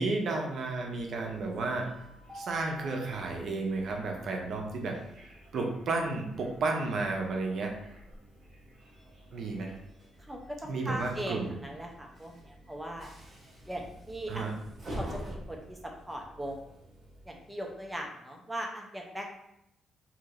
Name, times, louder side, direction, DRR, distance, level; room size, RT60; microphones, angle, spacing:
voice 1, 0.0-1.9 2.3-5.0 5.5-7.7 9.3-9.7 10.7-11.5 14.3-14.5, right 3 dB, 60° right, 1 dB, 0.6 m, -32 dB
Train, 0.9-18.1, right 1 dB, 35° right, 1.0 m, -48 dB
voice 2, 10.3-13.1 13.7-14.5 15.0-16.6 17.3-19.4, right 1 dB, 10° right, 1 dB, 0.5 m, -39 dB
2.9 x 2.7 x 2.4 m, 0.80 s
cardioid pair, 90°, 0 cm